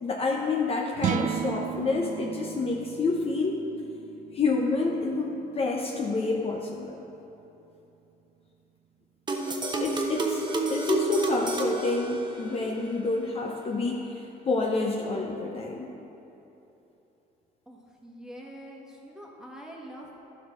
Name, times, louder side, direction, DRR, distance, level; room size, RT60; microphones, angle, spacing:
voice 1, 0.0-3.6 4.3-7.0 9.8-15.9, left 3 dB, 35° left, 0 dB, 0.7 m, -28 dB
sound 1, 0.9-7.3, right 9 dB, 50° right, 0.4 m, -36 dB
sound 2, 9.3-12.7, right 3 dB, 25° right, 0.9 m, -29 dB
voice 2, 17.6-20.2, equal, 5° right, -2 dB, 1.5 m, -45 dB
11.5 x 4.8 x 5.8 m, 3.0 s
cardioid pair, 110°, 17 cm